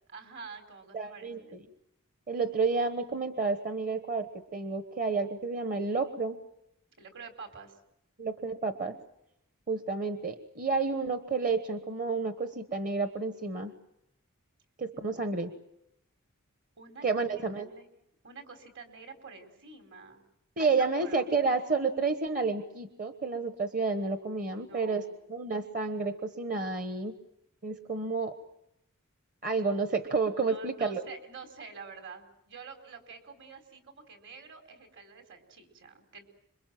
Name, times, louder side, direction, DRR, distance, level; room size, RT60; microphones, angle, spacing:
voice 1, 0.1-1.6 7.0-7.8 15.0-15.3 16.8-17.2 17.5-17.9 18.2-20.2 20.6-21.3 24.4-25.2 30.5-36.2, right 5 dB, 55° right, 6 dB, 4.4 m, -48 dB
voice 2, 0.9-1.4 2.3-6.4 8.2-9.0 9.7-13.7 14.8-15.5 17.0-17.7 20.6-25.0 25.3-27.2 27.6-28.3 29.4-31.0, right 4 dB, 40° right, 7 dB, 1.3 m, -30 dB
27.0 x 23.5 x 7.6 m, 0.81 s
head